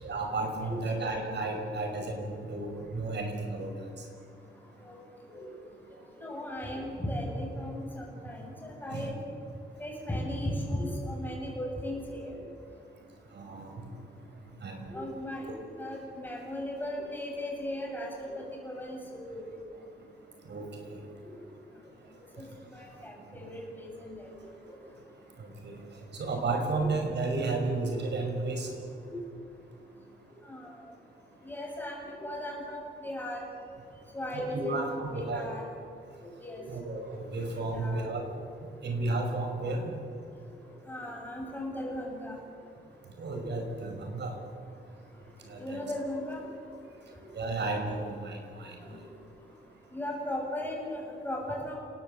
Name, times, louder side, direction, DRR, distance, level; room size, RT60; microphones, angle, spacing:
voice 1, 0.0-3.7 8.9-9.1 13.3-13.7 14.6-14.8 15.5-15.6 20.4-21.0 25.4-25.8 26.1-28.7 34.3-35.5 36.7-38.2 38.8-39.9 43.2-44.3 45.5-45.8 47.3-48.8, right 3 dB, 65° right, 3 dB, 5.8 m, -33 dB
voice 2, 0.6-1.1 2.0-2.1 4.8-5.5 6.2-9.2 9.8-12.3 14.9-15.4 15.8-19.4 21.2-21.3 22.4-22.5 22.7-24.3 24.7-24.8 29.1-29.2 30.4-30.9 31.4-33.4 34.1-35.7 36.4-36.8 37.5-38.1 40.9-42.4 45.6-46.5 48.8-49.0 49.9-51.8, left 1 dB, 10° left, -2 dB, 7.4 m, -37 dB
29.5 x 19.0 x 8.1 m, 2.4 s
wide cardioid pair, 160°, 19 cm